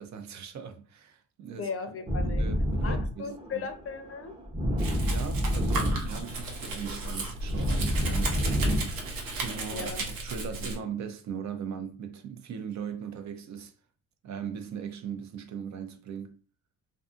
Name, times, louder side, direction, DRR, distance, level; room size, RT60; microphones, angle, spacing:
voice 1, 0.0-1.7 2.2-3.7 4.7-8.6 9.4-13.7 14.2-16.3, right 7 dB, 55° right, 0.5 m, -39 dB
voice 2, 1.6-2.4 2.8-4.4 9.7-10.0, left 5 dB, 40° left, 0.5 m, -37 dB
sound 1, 2.1-10.1, equal, 15° right, 0.6 m, -29 dB
Domestic sounds home sounds, 4.8-10.8, right 2 dB, 75° right, 0.8 m, -35 dB
2.5 x 2.5 x 2.4 m
cardioid pair, 85°, 34 cm